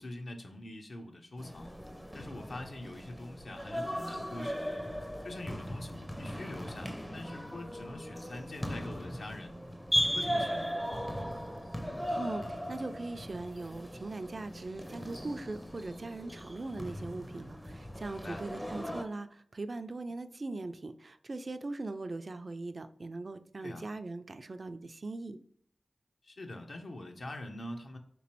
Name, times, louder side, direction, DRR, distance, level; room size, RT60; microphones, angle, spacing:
voice 1, 0.0-1.8 2.1-4.6 5.2-9.6 10.0-10.8 18.0-18.4 23.6-23.9 26.2-28.0, left 1 dB, 70° left, 4 dB, 0.6 m, -44 dB
sound 1, 1.4-19.0, equal, 10° left, 0.4 m, -38 dB
voice 2, 12.2-25.4, right 2 dB, 55° right, 10 dB, 0.3 m, -40 dB
3.3 x 3.0 x 2.9 m, 0.66 s
cardioid pair, 50°, 0 cm